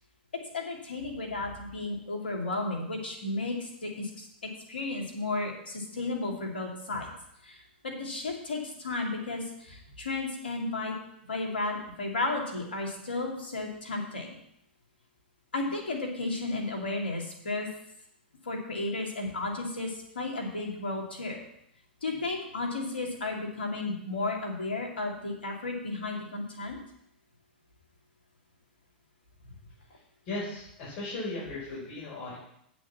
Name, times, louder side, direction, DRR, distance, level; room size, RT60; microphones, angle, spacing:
voice 1, 0.5-7.1 7.4-10.9 11.3-14.4 15.5-17.7 18.4-21.4 22.0-26.8, left 2 dB, 85° left, 0 dB, 2.9 m, -33 dB
voice 2, 30.2-32.4, left 2 dB, 50° left, -6 dB, 5.2 m, -36 dB
8.8 x 6.3 x 7.2 m, 0.75 s
hypercardioid pair, 105°, 5 cm